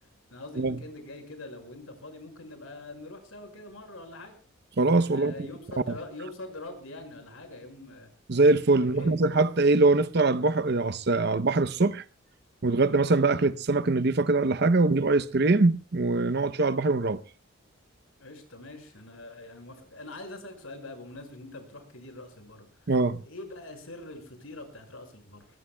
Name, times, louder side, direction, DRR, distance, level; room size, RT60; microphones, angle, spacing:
voice 1, 0.3-4.4 5.1-8.1 8.8-9.1 18.2-22.7 23.2-25.5, left 2 dB, 85° left, 5.6 m, -43 dB
voice 2, 4.8-5.3 5.9-6.0 8.3-12.0 12.6-17.2 22.9-23.2, right 3 dB, 50° right, 0.7 m, -23 dB
22.5 x 21.5 x 2.3 m
head